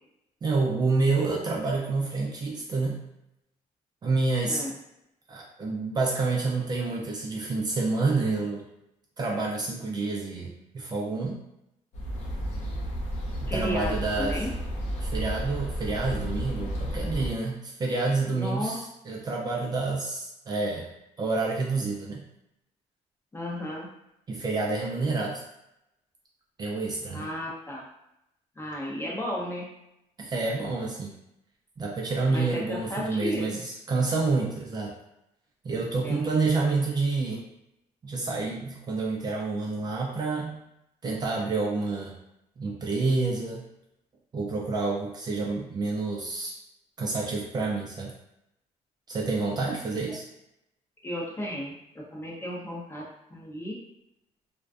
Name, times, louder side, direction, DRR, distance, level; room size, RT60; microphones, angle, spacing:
voice 1, 0.4-3.0 4.0-4.6 5.3-8.6 9.2-11.4 13.4-14.4 15.0-22.2 24.3-25.4 26.6-27.3 30.2-31.1 31.8-34.9 35.6-37.4 38.0-40.6 41.0-42.1 42.6-43.6 44.3-46.5 47.0-48.1 49.1-50.2, right 3 dB, 30° right, -2 dB, 0.4 m, -28 dB
voice 2, 4.4-4.8 13.5-14.5 18.3-18.7 23.3-23.9 27.1-27.9 28.6-29.7 32.3-33.6 36.0-36.3 51.0-53.0 53.3-53.8, equal, 20° left, -3 dB, 0.6 m, -34 dB
sound 1, 11.9-17.3, equal, 60° left, 0.6 m, -32 dB
2.5 x 2.2 x 2.3 m, 0.84 s
cardioid pair, 125°, 13 cm